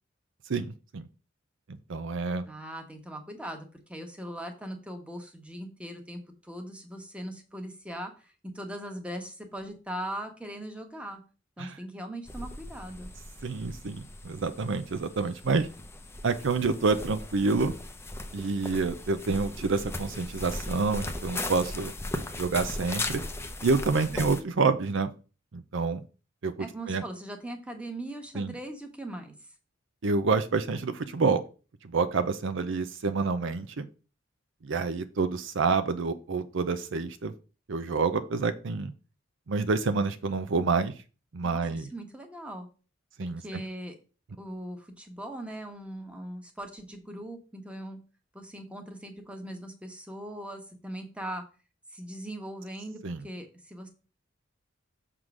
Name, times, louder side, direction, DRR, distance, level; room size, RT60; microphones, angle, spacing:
voice 1, 0.5-1.1 1.7-2.5 11.6-11.8 13.4-15.7 16.2-17.7 18.3-21.9 22.4-23.2 23.6-25.1 25.5-26.0 26.4-26.5 26.9-27.0 28.3-28.5 30.0-31.4 31.8-33.9 34.6-37.3 37.7-38.9 39.5-40.9 41.3-41.9 43.2-43.6 53.0-53.2, right 4 dB, 65° right, 11 dB, 0.6 m, -28 dB
voice 2, 2.5-11.2 11.6-13.1 24.0-24.3 26.6-29.3 41.4-42.7 43.2-43.9 44.4-48.0 48.3-51.4 51.9-53.9, right 1 dB, 5° right, 4 dB, 1.2 m, -40 dB
sound 1, 12.3-24.4, left 2 dB, 15° left, 0.7 m, -38 dB
6.5 x 3.7 x 6.0 m, 0.35 s
head